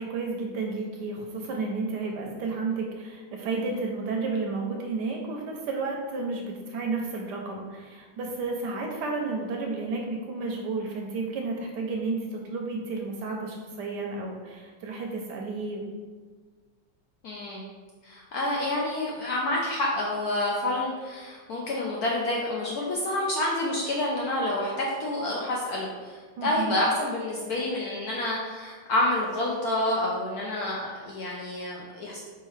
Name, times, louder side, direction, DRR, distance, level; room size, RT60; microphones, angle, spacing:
voice 1, 0.0-15.9 26.4-26.7, right 3 dB, 75° right, 1 dB, 1.0 m, -32 dB
voice 2, 17.2-17.6 18.0-32.2, left 1 dB, 70° left, -3 dB, 0.9 m, -28 dB
4.6 x 3.6 x 3.2 m, 1.5 s
omnidirectional pair, 2.1 m